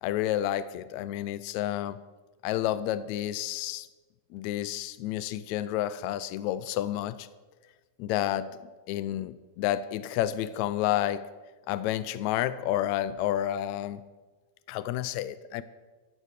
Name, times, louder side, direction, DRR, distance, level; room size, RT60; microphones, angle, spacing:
voice 1, 0.0-2.0 2.4-3.9 4.3-7.3 8.0-8.6 8.9-11.3 11.7-14.0 14.7-15.6, left 12 dB, 85° left, 15 dB, 1.6 m, -30 dB
14.5 x 12.0 x 6.6 m, 1.3 s
omnidirectional pair, 3.9 m